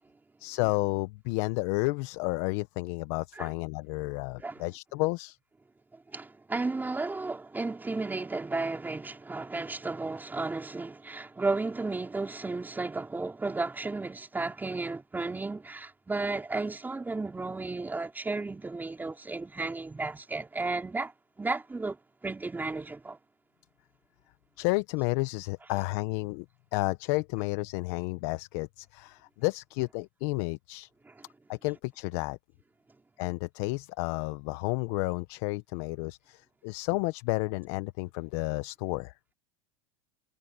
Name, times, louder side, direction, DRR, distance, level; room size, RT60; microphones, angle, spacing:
voice 1, 0.4-5.4 24.6-26.4 26.7-30.9 31.5-32.4 33.2-39.1, left 24 dB, 60° left, 1.0 m, -31 dB
voice 2, 6.1-22.0 22.2-23.2 31.0-31.3, right 3 dB, 10° right, 4.0 m, -33 dB
supercardioid pair, 120°, 17 cm